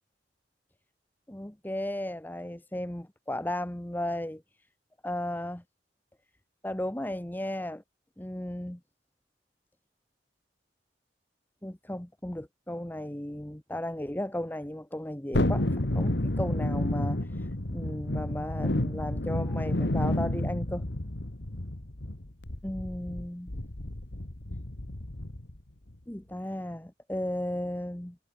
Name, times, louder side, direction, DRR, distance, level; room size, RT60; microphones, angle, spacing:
voice 1, 1.3-4.4 5.0-5.6 6.6-7.8 8.2-8.8 11.6-15.7 15.9-20.8 22.6-23.5 26.1-28.1, left 1 dB, 10° left, 0.9 m, -35 dB
Thunderstorm, 15.3-25.6 25.9-26.0, left 1 dB, 70° left, 1.9 m, -30 dB
head